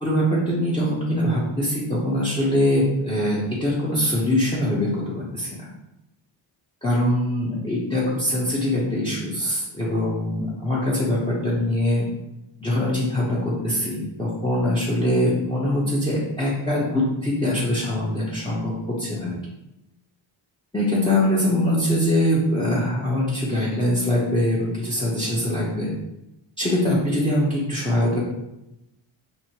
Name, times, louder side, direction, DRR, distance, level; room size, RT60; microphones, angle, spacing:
voice 1, 0.0-5.7 6.8-12.1 12.6-18.7 19.0-19.4 20.7-25.9 26.6-28.2, left 1 dB, 10° left, -6 dB, 0.9 m, -23 dB
6.1 x 2.1 x 2.9 m, 0.91 s
cardioid pair, 90°, 47 cm